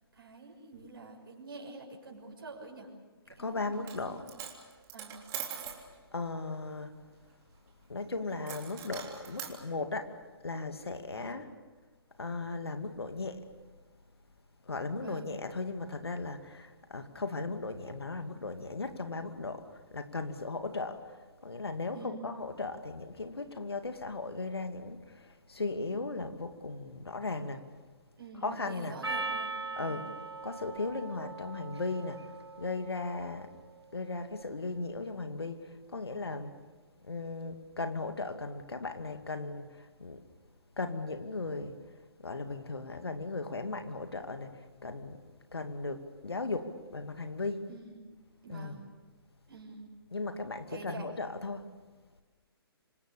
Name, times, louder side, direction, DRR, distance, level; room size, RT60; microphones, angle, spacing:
voice 1, 0.1-2.9 3.2-4.4 4.9-5.2 11.1-11.4 15.0-15.3 21.9-22.2 28.2-30.0 47.7-48.1 48.4-48.8 49.5-49.9 50.7-51.1, right 3 dB, 60° right, 0 dB, 6.6 m, -47 dB
voice 2, 3.4-4.2 6.1-6.9 7.9-10.1 10.4-11.5 12.2-13.4 14.7-19.6 19.9-21.0 21.4-27.7 28.4-29.0 29.7-30.1 30.4-32.2 32.6-33.5 33.9-35.6 35.9-36.6 37.0-39.7 40.0-40.2 40.8-41.8 42.2-44.6 44.8-45.2 45.5-47.6 48.5-48.8 50.1-51.7, left 3 dB, 75° left, 7 dB, 2.4 m, -37 dB
Coin (dropping), 3.7-4.0 4.3-5.8 8.4-9.5, right 9 dB, 25° right, 3.4 m, -41 dB
Percussion, 29.0-33.6, right 3 dB, 85° right, 1.1 m, -40 dB
27.0 x 25.0 x 6.9 m, 1.3 s
figure-of-eight pair, 130°, 13 cm